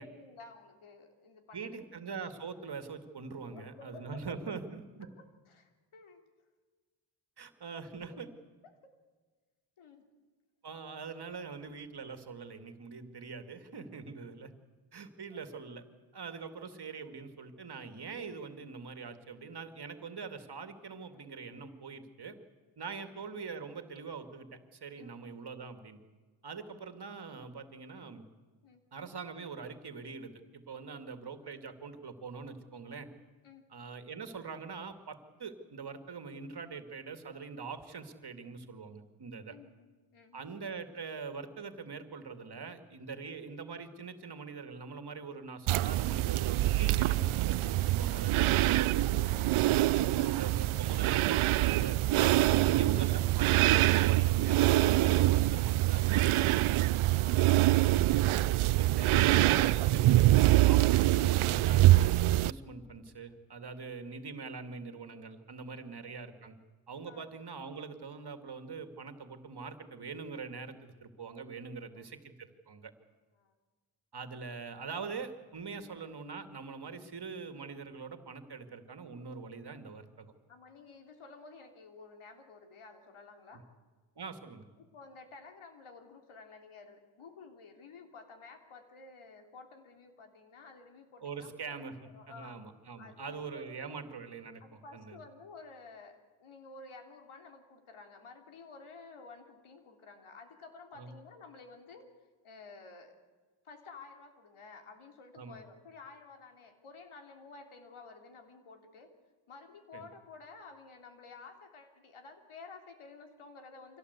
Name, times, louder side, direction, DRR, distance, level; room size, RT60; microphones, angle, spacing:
voice 1, 0.0-2.0 3.5-4.2 4.5-4.6 5.2-6.2 8.1-8.2 8.6-8.7 9.8-10.0 15.3-15.5 23.0-23.2 25.0-25.4 26.5-26.7 28.6-28.9 30.8-31.1 33.4-33.7 39.5-40.5 43.2-43.3 49.9-50.3 52.7-53.0 57.2-57.9 59.0-59.1 62.6-62.8 63.7-63.9 65.7-66.1 67.1-67.4 71.8-72.1 73.3-73.6 75.7-75.9 79.3-79.5 80.5-83.6 84.8-92.6 93.0-94.0 94.6-102.1 102.4-103.2 103.6-109.1 109.5-114.0, left 4 dB, 80° left, 5 dB, 3.3 m, -53 dB
voice 2, 1.5-5.1 7.4-8.3 10.6-14.5 14.9-15.8 16.1-22.4 22.8-26.0 26.4-28.2 28.9-33.1 33.7-39.5 40.3-49.5 50.0-52.1 52.7-56.8 58.7-66.6 66.9-72.9 74.1-80.3 84.2-84.7 91.2-91.9 92.3-95.2 101.0-101.1 105.4-105.6 109.9-110.0, right 5 dB, 50° right, 8 dB, 2.3 m, -43 dB
sound 1, 45.7-62.5, right 16 dB, 75° right, 0.6 m, -25 dB
25.0 x 17.0 x 8.2 m, 1.4 s
cardioid pair, 70°, 49 cm